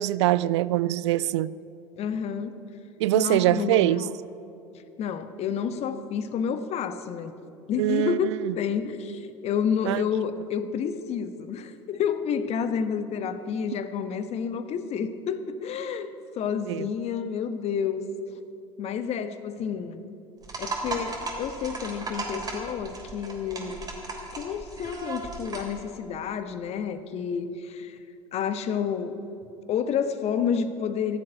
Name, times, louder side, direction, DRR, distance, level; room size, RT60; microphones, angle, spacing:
voice 1, 0.0-1.5 3.0-4.1 7.8-8.5 9.9-10.0 16.7-16.9, right 15 dB, 65° right, 0.4 m, -23 dB
voice 2, 2.0-2.6 3.1-4.1 5.0-7.4 7.7-18.1 18.8-20.1 20.6-23.8 24.3-28.0 28.3-29.2 29.7-31.2, left 7 dB, 40° left, 1.1 m, -29 dB
sound 1, 20.4-25.8, right 3 dB, 25° right, 3.6 m, -36 dB
16.0 x 7.6 x 10.0 m
figure-of-eight pair, 70°, 16 cm